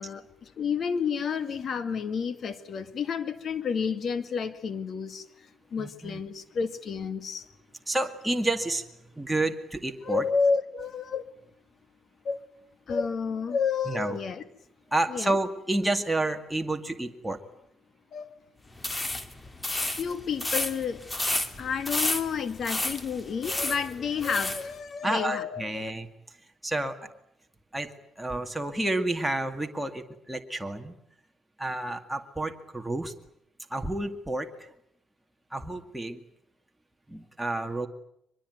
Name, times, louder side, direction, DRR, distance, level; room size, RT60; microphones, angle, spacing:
voice 1, 0.0-7.5 10.0-11.3 12.2-12.4 12.9-14.4 15.1-15.4 18.1-18.3 19.8-21.0 21.6-25.9, left 6 dB, 55° left, 11 dB, 2.1 m, -30 dB
voice 2, 5.8-6.2 7.9-8.8 9.2-10.3 13.9-14.2 14.9-17.4 25.0-26.1 26.6-27.1 27.7-30.9 31.6-33.1 33.7-34.7 35.5-36.2 37.1-37.9, right 2 dB, 5° right, 4 dB, 2.2 m, -30 dB
sound 1, 18.8-24.7, left 2 dB, 20° left, 2.4 m, -31 dB
23.5 x 21.5 x 9.5 m, 0.77 s
cardioid pair, 90°, 0 cm